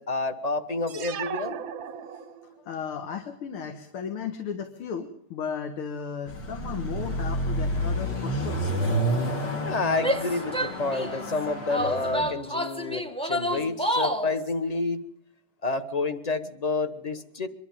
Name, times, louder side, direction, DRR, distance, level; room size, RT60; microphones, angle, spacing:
voice 1, 0.0-1.6 9.6-15.0 15.6-17.5, left 3 dB, 25° left, 9 dB, 1.0 m, -29 dB
sound 1, 0.9-2.7, right 8 dB, 55° right, 1.1 m, -37 dB
voice 2, 2.6-8.6, left 6 dB, 75° left, 6 dB, 2.4 m, -35 dB
Car passing by / Accelerating revving vroom, 6.3-12.3, equal, 55° left, 2.8 m, -29 dB
Female speech woman speaking / Yell, 10.0-11.2 11.7-14.3, equal, 5° left, 0.6 m, -28 dB
24.5 x 12.0 x 9.0 m, 0.68 s
omnidirectional pair, 2.4 m